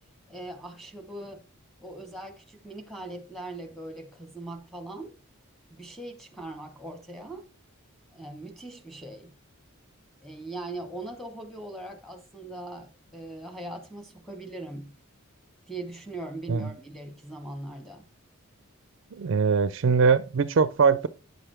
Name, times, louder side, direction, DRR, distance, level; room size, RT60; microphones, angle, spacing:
voice 1, 0.3-1.4 1.8-5.1 5.7-7.5 8.1-9.3 10.2-15.0 15.7-18.0, right 2 dB, ahead, 1.0 m, -40 dB
voice 2, 19.1-21.1, right 5 dB, 55° right, 0.4 m, -22 dB
9.4 x 5.9 x 3.3 m
head